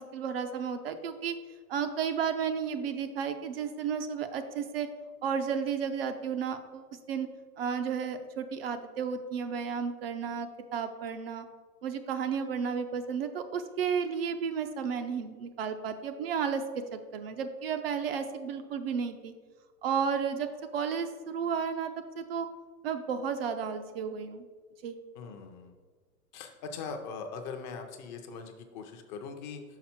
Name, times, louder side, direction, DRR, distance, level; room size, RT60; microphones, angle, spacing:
voice 1, 0.0-1.4 1.7-4.9 5.2-7.3 7.6-11.5 11.8-19.3 19.8-22.5 22.8-24.4 24.8-25.0, right 6 dB, 45° right, 7 dB, 0.4 m, -33 dB
voice 2, 25.2-25.7 26.3-29.6, left 5 dB, 30° left, 6 dB, 0.6 m, -41 dB
5.8 x 5.2 x 4.3 m, 1.5 s
hypercardioid pair, 135°, 46 cm